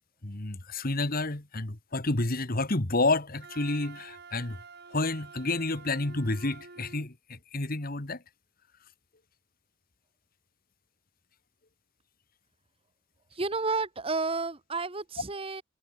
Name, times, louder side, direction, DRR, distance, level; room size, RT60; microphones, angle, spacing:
voice 1, 0.2-4.6 4.9-8.2, left 2 dB, 45° left, 1.8 m, -30 dB
Wind instrument woodwind instrument, 3.4-7.1, right 4 dB, 50° right, 3.0 m, -49 dB
voice 2, 13.3-15.6, right 3 dB, 25° right, 1.3 m, -31 dB
head